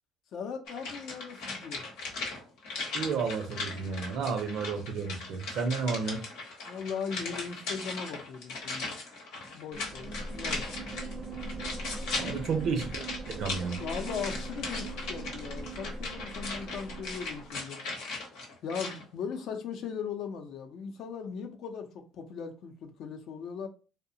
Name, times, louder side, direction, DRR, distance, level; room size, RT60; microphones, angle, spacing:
voice 1, 0.3-1.9 6.7-9.0 9.5-10.7 12.2-12.6 13.8-17.8 18.6-23.7, left 6 dB, 65° left, 0.5 m, -39 dB
sound 1, 0.7-19.0 19.3-19.4, left 3 dB, 90° left, 0.8 m, -39 dB
voice 2, 2.9-6.2 12.2-13.0 13.3-13.8, right 5 dB, 65° right, 0.6 m, -31 dB
sound 2, 9.7-17.5, right 2 dB, 25° right, 0.5 m, -40 dB
2.7 x 2.1 x 2.6 m
cardioid pair, 105°, 0 cm